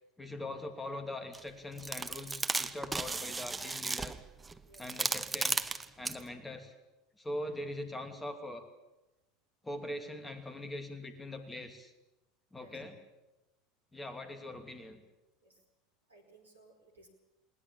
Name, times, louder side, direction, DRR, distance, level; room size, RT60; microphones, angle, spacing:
voice 1, 0.2-4.1 4.8-5.6 6.0-6.7 7.2-8.7 9.6-11.9 12.5-13.0 13.9-15.0, left 1 dB, 10° left, 7 dB, 2.8 m, -42 dB
sound 1, 1.3-1.4 1.8-6.2, right 3 dB, 15° right, 1.0 m, -35 dB
voice 2, 4.6-5.0 12.6-12.8 15.4-15.6 16.1-17.1, right 2 dB, 85° right, 1 dB, 4.6 m, -60 dB
20.0 x 20.0 x 8.7 m, 1.0 s
figure-of-eight pair, 75°, 0 cm